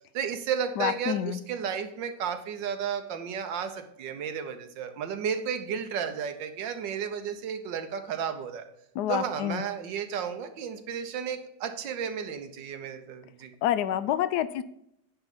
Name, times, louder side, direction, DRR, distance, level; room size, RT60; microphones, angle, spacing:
voice 1, 0.1-8.6 9.1-13.5, right 7 dB, 85° right, 7 dB, 1.5 m, -33 dB
voice 2, 0.8-1.4 8.9-9.6 13.6-14.6, left 11 dB, 75° left, 14 dB, 1.0 m, -27 dB
9.6 x 3.9 x 5.9 m, 0.77 s
omnidirectional pair, 1.9 m